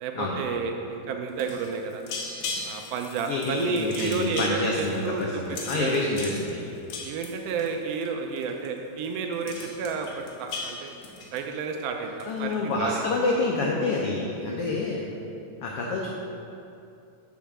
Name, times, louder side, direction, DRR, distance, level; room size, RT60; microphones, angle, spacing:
voice 1, 0.0-2.0 2.6-5.2 5.7-6.1 7.0-11.0 11.3-13.0 14.4-14.7, right 5 dB, 85° right, 3 dB, 1.4 m, -31 dB
sound 1, 1.3-8.1 8.4-8.7 9.0-9.1 9.3-11.8 12.2-12.5, left 4 dB, 70° left, 1.9 m, -38 dB
voice 2, 3.3-6.7 12.0-15.1 15.6-16.1, left 3 dB, 85° left, -2 dB, 1.2 m, -28 dB
7.3 x 4.4 x 6.0 m, 2.7 s
omnidirectional pair, 3.4 m